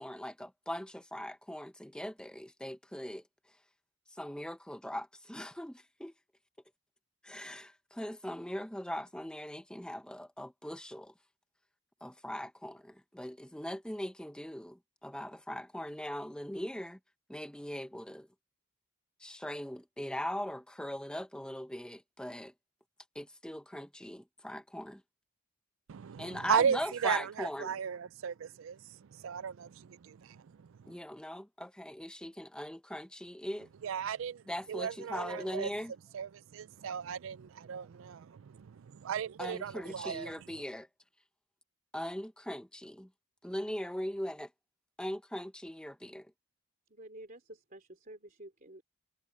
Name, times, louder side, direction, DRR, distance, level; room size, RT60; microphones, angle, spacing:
voice 1, 0.0-3.2 4.1-6.1 7.2-11.1 12.0-17.0 17.3-18.3 19.2-22.5 23.1-25.0 26.2-27.8 30.9-33.7 34.5-35.9 39.4-40.9 41.9-43.1 43.4-44.5 45.0-46.3, equal, 5° left, 0.8 m, -40 dB
voice 2, 25.9-30.4 30.8-30.9 33.8-34.4 34.7-35.7 36.1-40.3, right 7 dB, 65° right, 0.4 m, -35 dB
voice 3, 46.9-48.8, right 1 dB, 40° right, 3.3 m, -50 dB
head